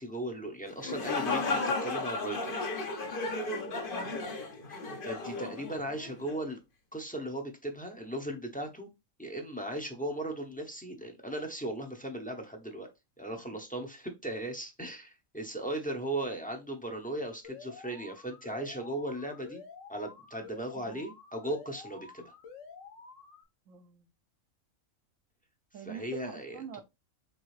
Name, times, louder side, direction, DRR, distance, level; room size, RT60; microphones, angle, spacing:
voice 1, 0.0-2.6 4.7-6.6 6.9-8.9 9.2-12.9 13.2-19.6 19.9-22.3 25.7-26.8, right 1 dB, 10° left, 0.6 m, -37 dB
sound 1, 0.7-6.4, left 3 dB, 45° left, 0.9 m, -34 dB
voice 2, 3.7-4.2 20.8-21.1 23.7-24.1 25.7-26.8, right 7 dB, 70° right, 1.0 m, -45 dB
Alarm, 17.4-23.4, left 5 dB, 65° left, 1.3 m, -50 dB
4.7 x 3.6 x 3.1 m
omnidirectional pair, 1.5 m